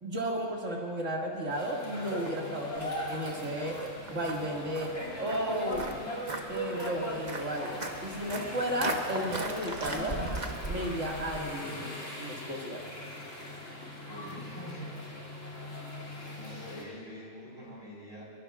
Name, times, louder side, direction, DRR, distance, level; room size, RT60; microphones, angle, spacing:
voice 1, 0.0-3.8 4.1-4.9 5.2-5.9 6.5-10.2 10.7-11.9 12.2-12.8, equal, 75° right, -2 dB, 2.7 m, -34 dB
sound 1, 1.5-16.8, equal, 85° left, 3.2 m, -39 dB
Walk footsteps, 2.8-11.4, right 2 dB, 35° right, 1.2 m, -39 dB
voice 2, 9.1-9.4 11.6-11.9 14.0-14.9 15.5-15.9 16.3-18.2, equal, 20° left, -6 dB, 5.1 m, -46 dB
24.0 x 23.0 x 2.5 m, 2.4 s
omnidirectional pair, 1.3 m